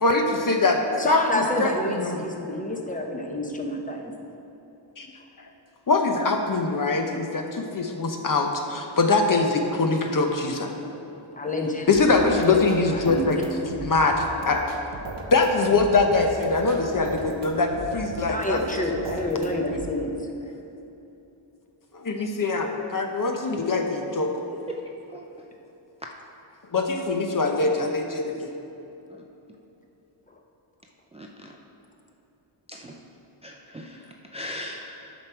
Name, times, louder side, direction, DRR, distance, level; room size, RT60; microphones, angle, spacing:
voice 1, 0.0-2.2 5.0-5.1 5.9-10.7 11.9-13.4 13.8-14.6 15.3-18.6 21.9-24.3 26.7-28.5, left 3 dB, 40° left, 3 dB, 0.8 m, -23 dB
voice 2, 1.0-4.1 11.3-12.1 12.4-12.6 12.9-13.3 18.3-20.3, left 1 dB, 15° left, 1 dB, 0.9 m, -28 dB
sound 1, 11.9-19.9, right 3 dB, 60° right, 1.1 m, -38 dB
voice 3, 31.1-31.5 32.7-33.0 33.4-35.1, equal, 15° right, -1 dB, 0.5 m, -38 dB
11.0 x 6.1 x 4.5 m, 2.9 s
wide cardioid pair, 130°, 48 cm